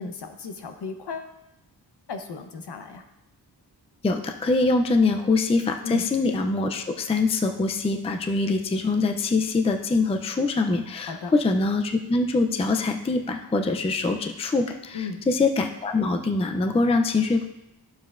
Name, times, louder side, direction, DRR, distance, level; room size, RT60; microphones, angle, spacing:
voice 1, 0.0-1.3 2.1-3.0 5.8-6.1 11.1-11.3 14.9-15.3, left 5 dB, 70° left, 6 dB, 0.9 m, -35 dB
voice 2, 4.0-17.5, left 3 dB, 15° left, 5 dB, 0.4 m, -24 dB
11.5 x 7.1 x 2.4 m, 0.88 s
wide cardioid pair, 145°, 42 cm